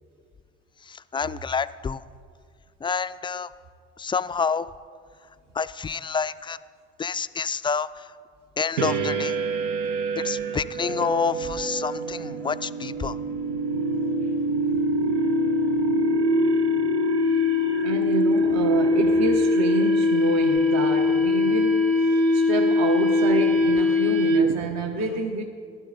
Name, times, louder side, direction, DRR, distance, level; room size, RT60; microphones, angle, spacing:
voice 1, 0.8-2.0 2.8-3.5 4.0-4.7 5.5-6.6 7.0-8.1 8.6-9.4 10.2-13.2, left 5 dB, 15° left, 14 dB, 0.3 m, -28 dB
sound 1, 8.8-24.7, left 1 dB, 80° right, 0.8 m, -23 dB
voice 2, 17.8-21.9 22.3-25.4, right 3 dB, 55° right, 3 dB, 1.1 m, -28 dB
15.0 x 11.5 x 4.0 m, 2.1 s
hypercardioid pair, 60°, 32 cm